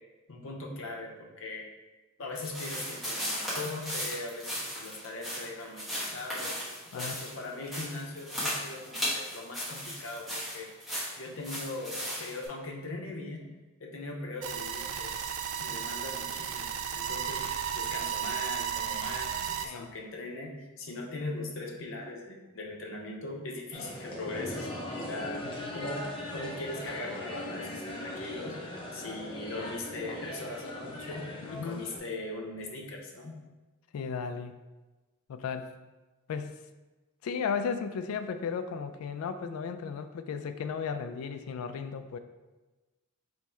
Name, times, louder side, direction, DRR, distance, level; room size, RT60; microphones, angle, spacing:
voice 1, 0.3-1.7 2.2-6.5 6.9-10.7 11.2-13.5 13.8-15.1 15.6-24.7 25.1-25.5 25.7-28.6 28.9-33.4, left 2 dB, 65° left, 0 dB, 0.7 m, -40 dB
sound 1, 2.4-12.5, equal, ahead, 1.1 m, -36 dB
sound 2, 14.4-19.7, right 9 dB, 70° right, 0.3 m, -34 dB
sound 3, 23.7-32.0, left 1 dB, 25° left, 0.6 m, -39 dB
voice 2, 31.4-31.9 33.9-34.5 35.3-35.7 36.3-36.6 37.2-42.2, left 6 dB, 85° left, 9 dB, 0.3 m, -35 dB
3.5 x 3.0 x 4.3 m, 1.2 s
head